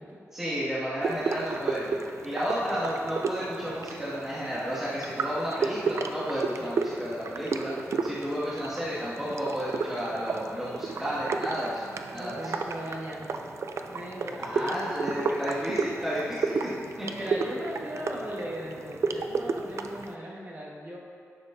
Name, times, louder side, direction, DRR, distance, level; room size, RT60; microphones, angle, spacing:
voice 1, 0.3-2.0 2.2-7.7 8.0-11.8 12.1-12.4 14.4-16.7 17.0-17.3, equal, 10° right, -11 dB, 1.9 m, -32 dB
sound 1, 1.0-20.1, right 4 dB, 65° right, 0.4 m, -33 dB
voice 2, 12.1-13.5 13.9-14.7 17.2-21.0, equal, 35° right, -3 dB, 1.4 m, -38 dB
10.5 x 7.1 x 2.6 m, 2.3 s
wide cardioid pair, 110°, 5 cm